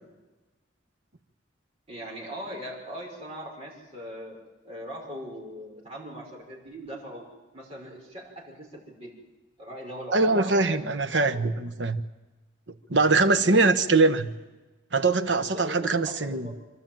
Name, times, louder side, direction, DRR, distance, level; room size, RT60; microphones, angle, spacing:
voice 1, 1.9-4.4 4.6-7.2 7.5-9.1 9.6-11.7 13.3-14.2 15.4-16.6, equal, 30° right, -2 dB, 5.9 m, -40 dB
voice 2, 10.1-12.0 12.9-14.3 14.9-16.5, right 3 dB, 60° right, 9 dB, 1.1 m, -22 dB
26.5 x 12.5 x 9.1 m, 1.2 s
head